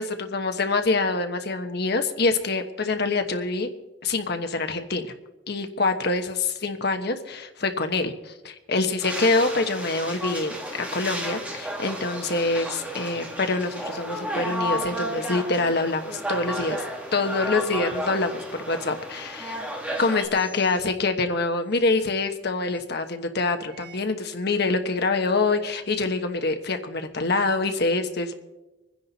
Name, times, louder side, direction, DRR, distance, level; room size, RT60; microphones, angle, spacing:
voice 1, 0.0-3.7 4.0-5.0 5.5-16.8 17.1-18.4 18.7-19.6 20.0-28.3, left 3 dB, 60° left, 6 dB, 1.2 m, -25 dB
sound 1, 9.0-20.3, equal, 5° right, 1.8 m, -32 dB
sound 2, 20.3-20.8 21.6-21.8 22.7-22.8 23.6-24.0 24.7-24.8, right 1 dB, 25° right, 6.2 m, -48 dB
24.0 x 10.0 x 4.1 m, 1.0 s
head